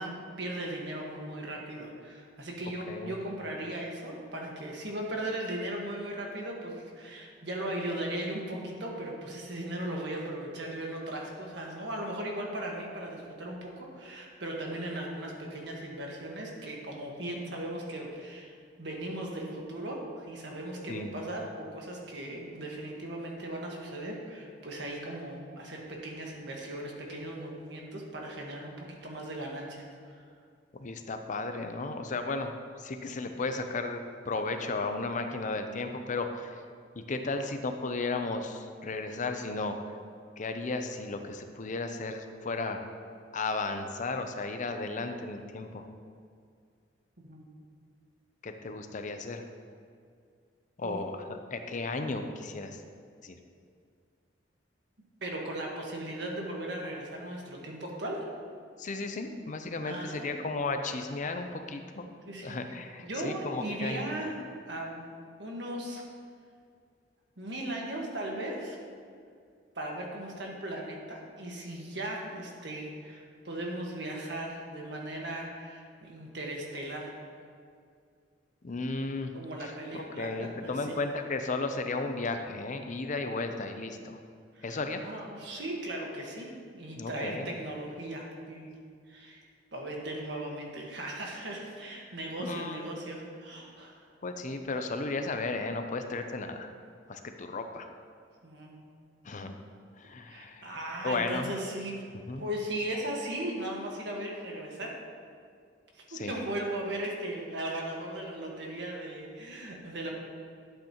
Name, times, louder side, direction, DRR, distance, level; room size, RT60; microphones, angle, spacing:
voice 1, 0.0-30.2 47.2-47.5 50.8-51.0 55.2-58.3 59.8-60.3 62.3-62.6 63.0-64.4 64.7-65.0 65.4-66.0 67.4-68.8 69.7-77.2 79.3-81.0 84.5-88.8 89.1-89.4 89.7-94.0 98.4-98.8 100.3-102.0 102.4-105.0 105.9-110.1, right 1 dB, 65° right, -1 dB, 1.6 m, -37 dB
voice 2, 30.8-32.5 32.8-36.6 36.9-39.8 40.4-42.8 43.3-45.9 48.4-49.4 50.8-51.2 51.5-52.8 53.2-53.4 58.8-62.1 62.4-64.0 78.6-79.3 79.6-84.2 84.6-85.0 87.0-87.5 92.4-92.8 94.2-96.7 97.1-97.9 99.2-99.5 100.0-100.8 101.0-101.5 102.3-102.4 106.1-106.3, left 3 dB, 45° left, 6 dB, 0.6 m, -34 dB
11.5 x 7.8 x 3.0 m, 2.2 s
head